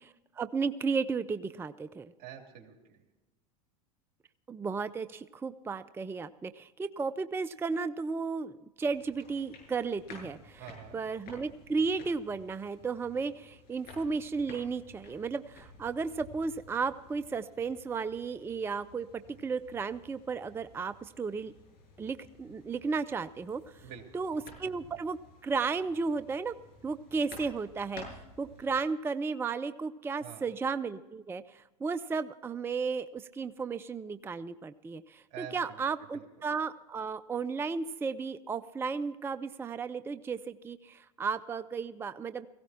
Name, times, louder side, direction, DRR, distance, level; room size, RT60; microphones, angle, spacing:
voice 1, 0.0-2.1 4.5-10.6 10.9-19.1 19.4-21.5 22.0-23.6 24.1-25.2 25.4-26.5 26.8-28.0 28.4-42.5, right 4 dB, 10° right, 13 dB, 0.5 m, -34 dB
voice 2, 2.2-3.0 10.5-11.0 23.8-24.2 30.2-30.4 35.3-35.9 36.1-36.2, right 9 dB, 50° right, 3 dB, 3.0 m, -47 dB
sound 1, 8.8-28.7, left 3 dB, 50° left, 7.4 m, -54 dB
17.5 x 16.0 x 4.3 m, 1.0 s
hypercardioid pair, 95°, 20 cm